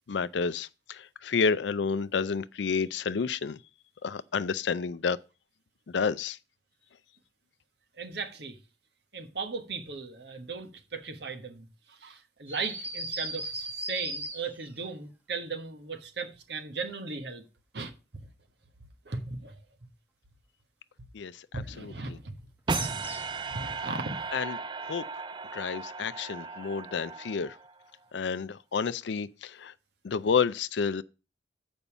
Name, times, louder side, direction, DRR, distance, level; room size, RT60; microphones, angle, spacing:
voice 1, 0.1-3.6 4.0-5.2 5.9-6.4 21.1-21.3 21.8-21.9 24.3-24.5 24.9-25.0 25.5-27.5 28.1-29.7 30.0-31.0, left 5 dB, 75° left, 0.4 m, -30 dB
voice 2, 7.9-8.6 9.1-17.5 17.7-17.9 19.0-19.6 21.5-22.3 22.7-23.0 23.5-24.2, right 4 dB, 65° right, 1.3 m, -37 dB
sound 1, 12.5-14.8 22.7-23.4, right 1 dB, 10° right, 1.2 m, -37 dB
sound 2, 22.7-27.9, right 4 dB, 25° right, 0.3 m, -36 dB
7.0 x 5.3 x 7.0 m
head